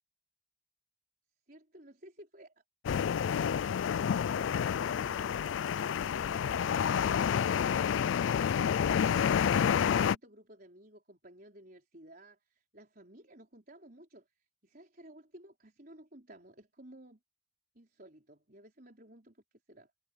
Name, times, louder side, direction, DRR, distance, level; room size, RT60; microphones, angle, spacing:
voice 1, 1.5-17.2 17.7-19.9, right 1 dB, 45° right, 4.9 m, -55 dB
sound 1, 2.8-10.1, left 8 dB, 75° left, 0.3 m, -29 dB
head